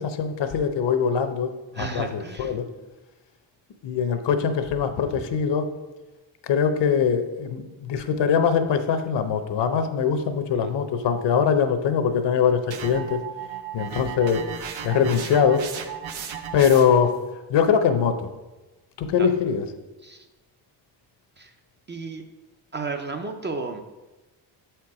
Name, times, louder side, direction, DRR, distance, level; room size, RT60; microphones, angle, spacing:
voice 1, 0.0-1.5 1.8-2.6 3.8-5.7 6.5-13.2 13.7-14.5 14.8-15.6 16.5-17.2 17.5-18.3 19.0-19.7, left 7 dB, 65° left, 8 dB, 0.8 m, -22 dB
voice 2, 1.7-2.5 10.5-10.7 13.9-14.0 19.2-19.3 20.0-20.2 21.4-21.5 21.9-22.2 22.7-23.8, right 4 dB, 25° right, 5 dB, 0.4 m, -33 dB
sound 1, 12.7-17.1, right 8 dB, 80° right, 0.8 m, -35 dB
7.1 x 4.5 x 4.8 m, 1.1 s
cardioid pair, 140°, 46 cm